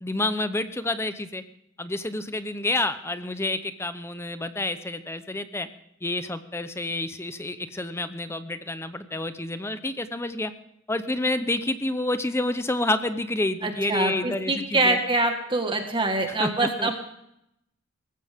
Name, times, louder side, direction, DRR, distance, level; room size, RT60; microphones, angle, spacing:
voice 1, 0.0-1.4 1.8-5.7 6.0-10.5 10.9-15.0 16.4-16.9, left 2 dB, 15° left, 11 dB, 0.8 m, -29 dB
voice 2, 13.6-17.0, right 2 dB, 25° right, 4 dB, 1.7 m, -25 dB
18.5 x 15.5 x 3.6 m, 0.78 s
head